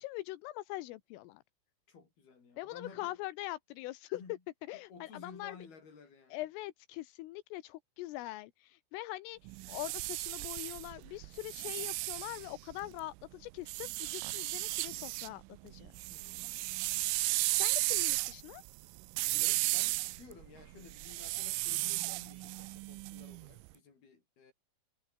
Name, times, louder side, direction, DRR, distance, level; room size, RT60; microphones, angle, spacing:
voice 1, 0.0-1.4 2.6-4.2 4.7-5.6 6.3-15.9 17.6-18.6, left 17 dB, 85° left, 3.7 m, -43 dB
voice 2, 1.9-3.2 4.1-4.4 4.9-6.4 16.1-16.9 19.2-24.5, left 5 dB, 50° left, 7.8 m, -54 dB
sound 1, 9.5-13.0 13.7-15.3 15.7-23.6, right 24 dB, 85° right, 3.1 m, -35 dB
omnidirectional pair, 5.9 m